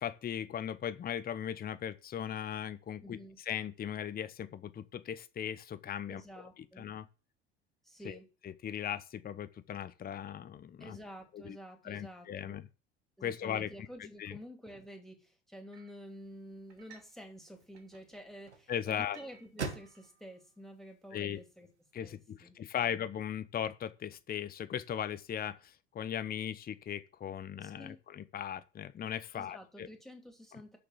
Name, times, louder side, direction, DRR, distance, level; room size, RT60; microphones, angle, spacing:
voice 1, 0.0-3.2 3.5-6.2 6.8-7.1 8.0-8.2 8.4-11.0 11.3-11.6 11.8-12.7 13.2-13.7 14.2-14.4 18.7-19.2 21.1-21.4 21.9-29.9, left 9 dB, 25° left, 0.8 m, -38 dB
voice 2, 3.0-3.4 6.1-6.9 7.8-8.3 10.8-12.5 13.2-21.7 22.0-22.9 27.6-28.0 29.3-30.8, equal, ahead, 2.9 m, -50 dB
sound 1, 15.7-16.0 16.7-17.2 17.5-20.1, right 6 dB, 70° right, 3.0 m, -59 dB
sound 2, 16.0-22.2, right 5 dB, 90° right, 1.4 m, -48 dB
6.9 x 6.8 x 7.7 m
figure-of-eight pair, 65°, 33 cm